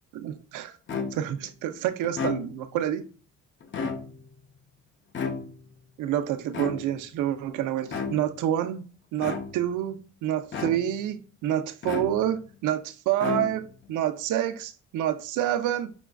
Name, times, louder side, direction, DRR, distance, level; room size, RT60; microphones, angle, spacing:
voice 1, 0.1-0.7 1.1-3.1 6.0-8.9 9.1-15.9, right 11 dB, 85° right, 0.6 m, -28 dB
sound 1, 0.9-1.4 2.0-2.8 3.6-4.4 5.1-5.8 6.5-7.2 7.9-8.4 9.2-9.8 10.5-11.1 11.8-12.5 13.2-13.9, left 5 dB, 40° left, 0.6 m, -33 dB
6.0 x 2.3 x 2.3 m
cardioid pair, 90°, 30 cm